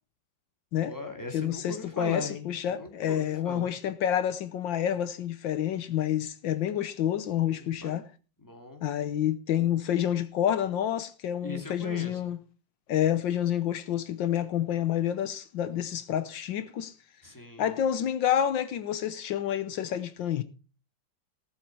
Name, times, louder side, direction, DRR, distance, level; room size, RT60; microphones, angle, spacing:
voice 1, 0.8-3.7 7.5-8.0 8.4-8.8 11.4-12.3 17.2-17.7, left 2 dB, 10° left, 2.7 m, -39 dB
voice 2, 1.3-8.1 8.8-12.4 12.9-16.9 17.6-20.4, left 10 dB, 80° left, 1.6 m, -28 dB
18.5 x 7.3 x 4.8 m
omnidirectional pair, 2.0 m